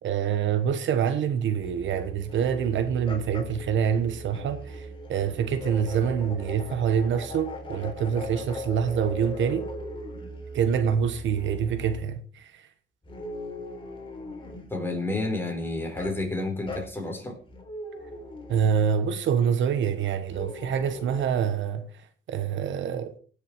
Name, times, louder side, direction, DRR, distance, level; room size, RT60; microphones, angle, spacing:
voice 1, 0.0-9.7 10.5-12.7 18.5-21.9 22.3-23.2, right 7 dB, 70° right, 1.2 m, -26 dB
sound 1, 1.6-12.1 13.0-14.7 16.0-16.2 16.7-16.9 17.5-18.8 20.3-21.3, equal, 25° left, 3.6 m, -39 dB
voice 2, 14.7-17.4, left 2 dB, 10° left, 4.4 m, -30 dB
18.5 x 7.0 x 4.7 m
cardioid pair, 90°, 20 cm